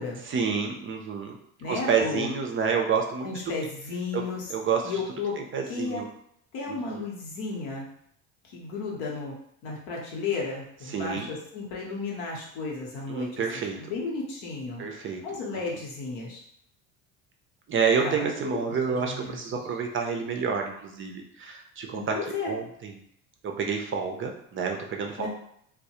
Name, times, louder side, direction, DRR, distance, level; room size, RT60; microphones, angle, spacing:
voice 1, 0.3-1.4 1.6-3.3 4.1-4.2 4.5-4.9 5.5-6.0 6.7-7.0 10.9-11.3 13.1-13.8 14.8-15.2 17.7-22.2 22.5-23.0 23.4-25.3, right 6 dB, 30° right, 3 dB, 0.4 m, -28 dB
voice 2, 1.6-2.3 3.2-4.5 4.8-5.4 5.7-6.0 6.5-7.9 8.4-9.3 9.6-13.4 13.8-14.9 15.2-16.4 18.0-19.6 21.9-22.5 25.2-25.3, left 4 dB, 75° left, -2 dB, 0.9 m, -33 dB
2.2 x 2.0 x 2.8 m, 0.70 s
hypercardioid pair, 70°, 40 cm